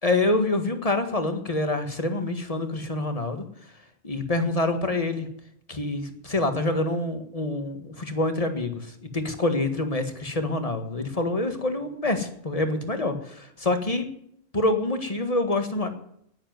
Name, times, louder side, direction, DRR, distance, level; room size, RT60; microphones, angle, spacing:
voice 1, 0.0-3.4 4.0-5.3 5.7-14.1 14.5-15.9, left 2 dB, 30° left, 7 dB, 1.7 m, -26 dB
10.0 x 10.0 x 9.2 m, 0.71 s
omnidirectional pair, 1.3 m